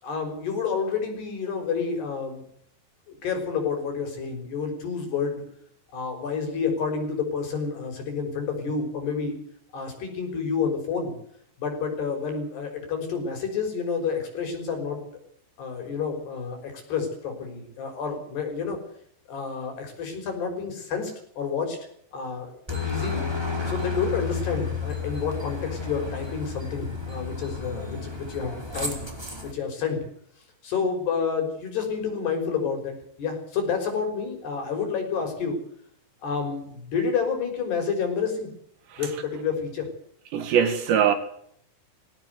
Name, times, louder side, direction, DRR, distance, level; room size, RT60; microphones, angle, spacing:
voice 1, 0.0-2.4 3.1-5.4 5.9-9.3 9.7-11.1 11.6-15.0 15.6-18.8 19.3-21.8 22.1-23.2 23.7-29.0 29.4-30.1 30.6-35.6 36.2-38.5 39.0-39.9, left 5 dB, 55° left, 7.5 m, -29 dB
Aircraft, 22.7-29.5, left 4 dB, 5° right, 4.1 m, -32 dB
voice 2, 40.3-41.2, right 8 dB, 65° right, 3.7 m, -21 dB
22.0 x 17.0 x 8.2 m
omnidirectional pair, 5.9 m